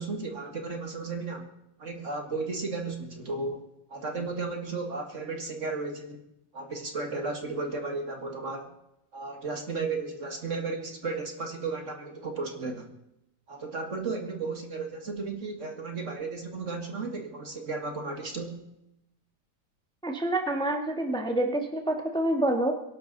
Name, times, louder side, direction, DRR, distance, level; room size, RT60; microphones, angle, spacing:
voice 1, 0.0-1.5 1.8-3.6 3.9-6.2 6.5-8.7 9.1-12.9 13.5-18.6, right 3 dB, 45° right, 4 dB, 2.0 m, -34 dB
voice 2, 20.0-22.7, right 1 dB, 5° left, 3 dB, 1.4 m, -27 dB
23.5 x 11.5 x 4.0 m, 0.85 s
omnidirectional pair, 2.0 m